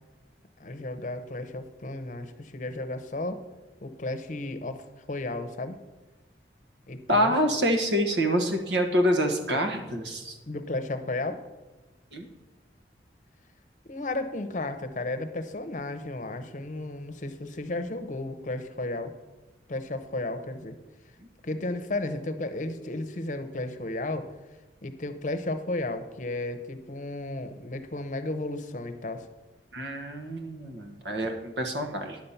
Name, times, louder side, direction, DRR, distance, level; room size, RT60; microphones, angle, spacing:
voice 1, 0.6-3.4 3.8-5.8 6.9-7.3 10.5-11.4 13.8-19.1 19.7-20.8 21.4-24.3 24.8-29.3, left 2 dB, 45° left, 8 dB, 0.8 m, -33 dB
voice 2, 7.1-10.4 12.1-12.3 29.7-32.2, equal, 75° right, 5 dB, 1.4 m, -26 dB
10.5 x 6.8 x 5.7 m, 1.2 s
head